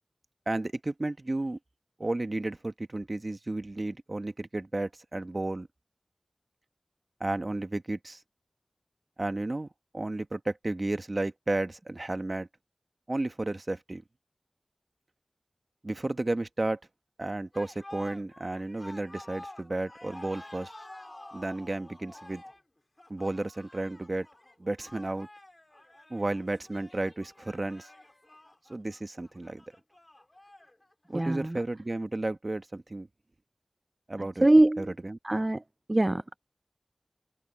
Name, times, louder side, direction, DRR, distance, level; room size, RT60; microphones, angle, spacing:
voice 1, 0.5-1.6 2.0-5.7 7.2-8.2 9.2-9.7 9.9-12.5 13.1-14.0 15.8-16.8 17.2-20.7 21.3-22.4 23.1-24.3 24.6-25.3 26.1-27.9 28.7-29.6 31.1-33.1 34.1-34.5 34.8-35.2, right 2 dB, 55° right, 1.2 m, -33 dB
sound 1, 17.5-31.3, left 1 dB, 35° left, 3.4 m, -50 dB
voice 2, 31.1-31.6 34.2-34.9 35.2-35.6 35.9-36.4, right 1 dB, 35° right, 0.3 m, -23 dB
wide cardioid pair, 45°, 0 cm